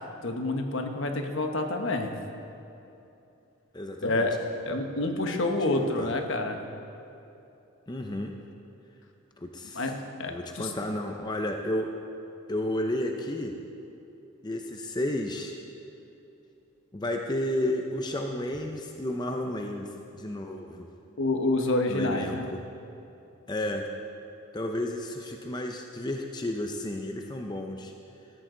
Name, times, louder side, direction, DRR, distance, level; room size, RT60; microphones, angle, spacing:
voice 1, 0.2-2.1 4.0-4.4 4.6-6.6 9.7-10.7 21.2-22.5, left 2 dB, 60° left, 4 dB, 1.3 m, -28 dB
voice 2, 3.7-4.3 5.0-5.3 5.8-6.1 7.9-8.3 9.4-9.9 10.2-11.9 12.5-13.5 14.4-15.5 16.9-20.9 21.9-22.6 23.5-23.9 24.5-27.9, left 1 dB, 20° left, 3 dB, 0.7 m, -32 dB
17.5 x 14.0 x 3.9 m, 2.9 s
head